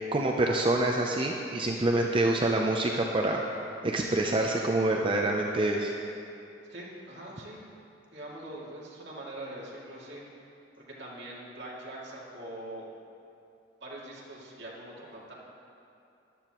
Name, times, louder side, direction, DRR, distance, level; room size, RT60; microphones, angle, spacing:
voice 1, 0.1-3.4 3.8-5.9, right 2 dB, 30° right, 0 dB, 0.6 m, -26 dB
voice 2, 6.7-7.7 8.1-10.2 10.8-12.9 13.8-15.3, right 1 dB, 65° right, -5 dB, 2.5 m, -43 dB
14.5 x 11.5 x 3.0 m, 2.8 s
head